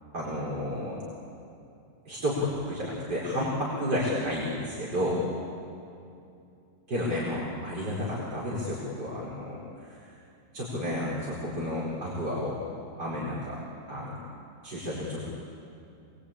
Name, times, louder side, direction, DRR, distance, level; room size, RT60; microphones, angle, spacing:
voice 1, 0.1-1.0 2.1-5.2 6.9-10.0 10.5-12.6 13.0-13.6 13.9-14.2 14.6-15.2, left 1 dB, 75° right, -6 dB, 5.4 m, -31 dB
26.5 x 22.5 x 8.8 m, 2.6 s
omnidirectional pair, 1.8 m